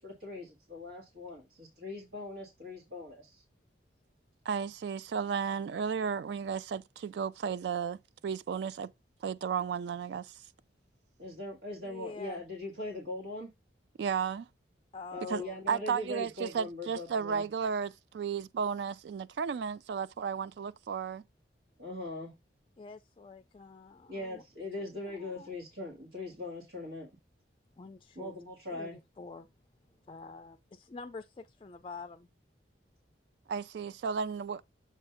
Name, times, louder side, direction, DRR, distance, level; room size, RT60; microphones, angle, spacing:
voice 1, 0.0-3.4 11.2-13.5 15.1-17.4 21.8-22.3 24.1-27.1 28.1-29.0, left 2 dB, 90° right, 1.7 m, -41 dB
voice 2, 4.5-8.0 8.2-8.9 9.2-10.4 14.0-14.5 15.3-15.4 15.7-21.2 33.5-34.6, right 6 dB, 65° right, 0.3 m, -33 dB
voice 3, 11.8-12.4 14.9-15.6 22.8-24.4 25.0-25.5 27.8-28.4 28.7-29.5 30.1-32.3, left 4 dB, 30° left, 0.3 m, -47 dB
7.3 x 2.6 x 5.5 m
head